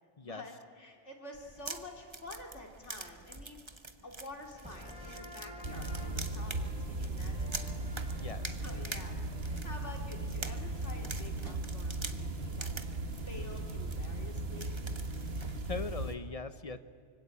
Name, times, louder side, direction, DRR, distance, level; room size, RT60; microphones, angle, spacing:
voice 1, 0.2-3.6 4.0-7.7 8.2-9.1 9.4-12.7 13.3-14.7, left 2 dB, 75° left, 2 dB, 3.4 m, -49 dB
sound 1, 1.3-15.8, right 3 dB, 25° right, 1.1 m, -47 dB
sound 2, 4.6-11.9, equal, 5° right, 3.4 m, -51 dB
sound 3, 5.6-16.2, right 2 dB, 55° right, 1.7 m, -37 dB
voice 2, 8.2-8.5 15.6-16.8, left 4 dB, 35° left, 11 dB, 0.9 m, -40 dB
25.0 x 24.5 x 8.6 m, 2.1 s
omnidirectional pair, 1.2 m